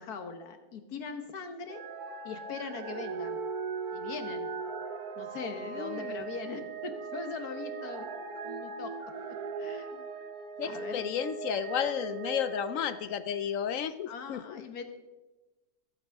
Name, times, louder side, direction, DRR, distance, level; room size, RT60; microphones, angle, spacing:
voice 1, 0.0-1.8 2.2-3.4 3.9-4.5 5.2-8.1 8.4-8.9 9.6-10.1 10.7-11.0 14.1-14.8, left 5 dB, 85° left, 7 dB, 1.7 m, -40 dB
sound 1, 1.7-13.7 14.3-14.4, right 5 dB, 80° right, 1.5 m, -39 dB
voice 2, 5.7-6.3 10.6-14.6, left 9 dB, 70° left, 13 dB, 0.9 m, -33 dB
22.5 x 8.0 x 3.5 m, 1.2 s
omnidirectional pair, 1.6 m